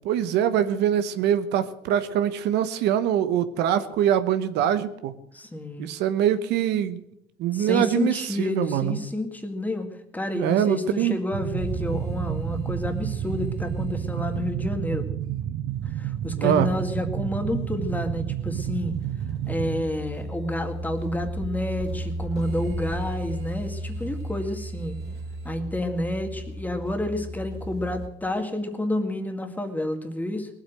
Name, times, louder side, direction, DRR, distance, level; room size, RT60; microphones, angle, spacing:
voice 1, 0.0-5.1 5.8-7.0 7.4-9.0 10.3-11.2 16.4-16.7, right 10 dB, 85° right, 11 dB, 1.0 m, -23 dB
voice 2, 5.3-5.9 7.5-9.9 10.1-15.1 15.9-18.9 19.5-25.0 25.4-30.5, left 1 dB, 10° left, 5 dB, 2.0 m, -29 dB
sound 1, 11.3-19.8, right 12 dB, 60° right, 0.6 m, -30 dB
sound 2, 11.6-28.1, right 1 dB, 40° right, 3.1 m, -36 dB
19.0 x 8.1 x 7.7 m, 0.79 s
cardioid pair, 110°, 17 cm